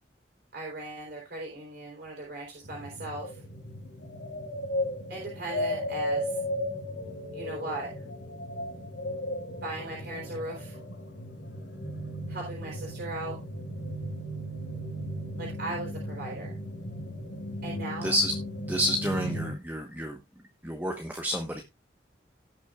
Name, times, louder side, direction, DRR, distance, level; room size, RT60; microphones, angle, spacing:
voice 1, 0.5-3.4 5.1-6.4 7.3-7.9 9.6-10.8 12.3-13.4 15.4-16.5 17.6-18.1, right 2 dB, 60° right, -2 dB, 3.9 m, -38 dB
sound 1, 2.6-19.5, equal, 75° left, 4.5 m, -35 dB
voice 2, 18.0-18.3 18.7-20.2 20.6-21.6, equal, 10° right, 3 dB, 1.2 m, -29 dB
17.5 x 6.1 x 2.4 m, 0.22 s
head